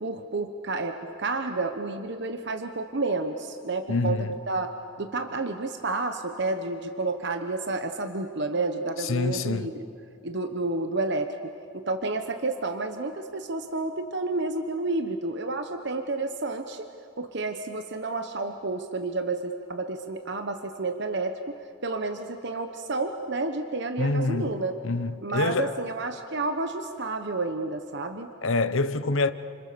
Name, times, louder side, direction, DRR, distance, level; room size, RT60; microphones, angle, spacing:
voice 1, 0.0-4.7 5.0-9.9 10.2-16.9 17.2-24.7 25.2-28.3, right 3 dB, 60° right, 1.1 m, -30 dB
voice 2, 3.9-4.3 9.0-9.7 24.0-24.5 24.8-25.7 28.4-29.3, left 3 dB, 85° left, 1.0 m, -26 dB
30.0 x 27.0 x 7.0 m
head